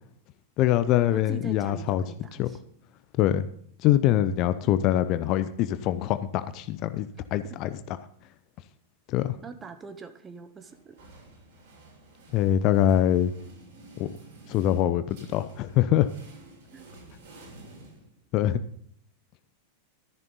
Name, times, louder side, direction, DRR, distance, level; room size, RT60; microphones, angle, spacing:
voice 1, 0.6-2.0 2.4-2.5 3.2-3.5 3.8-7.7 9.1-9.4 12.3-13.3 14.0-14.1 14.5-16.1 18.3-18.6, left 12 dB, 40° left, 13 dB, 0.7 m, -24 dB
voice 2, 1.1-2.6 9.4-11.0 16.7-16.9, right 5 dB, 20° right, 9 dB, 1.4 m, -43 dB
sound 1, 10.6-18.5, right 2 dB, 55° right, 5.9 m, -51 dB
13.5 x 10.5 x 3.9 m, 0.64 s
figure-of-eight pair, 90°, 0 cm